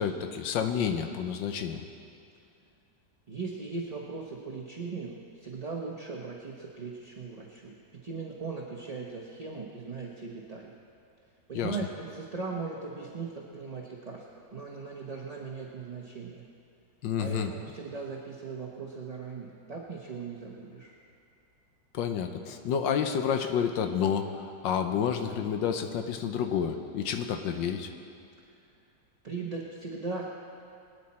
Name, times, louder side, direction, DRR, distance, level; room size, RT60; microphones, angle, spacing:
voice 1, 0.0-1.8 11.5-11.8 17.0-17.5 21.9-24.4 24.6-27.9, left 7 dB, 90° left, 6 dB, 1.5 m, -29 dB
voice 2, 3.3-7.7 8.0-10.7 11.5-14.2 14.5-16.4 17.2-21.0 29.2-30.3, right 4 dB, 35° right, -2 dB, 0.7 m, -38 dB
22.0 x 9.9 x 4.2 m, 2.5 s
omnidirectional pair, 1.9 m